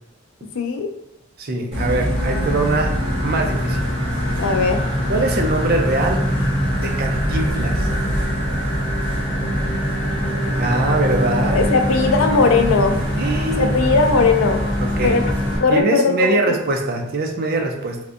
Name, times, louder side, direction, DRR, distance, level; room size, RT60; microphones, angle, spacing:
voice 1, 0.5-0.9 4.4-4.9 11.5-13.0 13.6-14.6 15.0-15.2 15.6-16.6, left 4 dB, 80° left, 5 dB, 0.4 m, -18 dB
voice 2, 1.4-2.9 3.2-3.9 5.1-6.3 6.7-7.9 10.6-12.4 12.6-12.7 13.2-13.7 14.8-15.2 15.7-18.0, right 2 dB, 50° right, 3 dB, 0.4 m, -23 dB
Bus, 1.7-15.6, equal, 25° right, 1.3 m, -23 dB
sound 1, 2.1-15.8, equal, 10° right, 0.9 m, -33 dB
3.4 x 2.5 x 2.5 m, 0.80 s
head